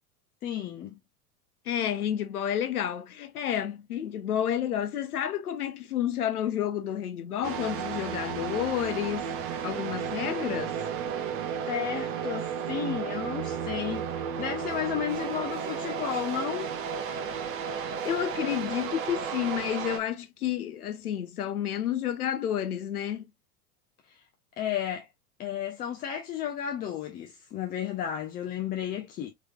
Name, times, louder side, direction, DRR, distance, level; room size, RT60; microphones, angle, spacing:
voice 1, 0.4-1.0 11.7-16.7 24.1-24.2 24.6-25.1 25.4-29.3, left 9 dB, 20° left, 0.5 m, -33 dB
voice 2, 1.7-9.3 9.6-10.8 18.0-23.3, left 10 dB, 70° left, 0.8 m, -30 dB
sound 1, 7.4-20.0, right 7 dB, 30° right, 0.8 m, -33 dB
Wind instrument woodwind instrument, 13.0-18.1, right 7 dB, 50° right, 1.3 m, -46 dB
3.8 x 3.2 x 2.3 m
figure-of-eight pair, 95°, 46 cm